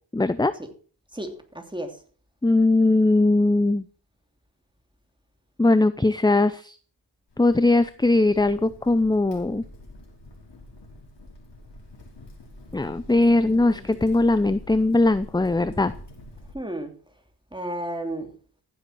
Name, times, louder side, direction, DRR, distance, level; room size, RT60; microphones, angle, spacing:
voice 1, 0.1-0.5 2.4-3.9 5.6-6.8 7.4-9.6 12.7-15.9, left 2 dB, 10° left, 14 dB, 0.6 m, -20 dB
voice 2, 1.1-1.9 13.4-13.5 13.8-14.1 16.5-16.9 17.5-18.3, right 1 dB, 10° right, 5 dB, 3.1 m, -33 dB
Crackle, 7.3-16.5, left 1 dB, 75° left, 5.2 m, -46 dB
15.0 x 8.1 x 6.3 m, 0.42 s
wide cardioid pair, 65°, 42 cm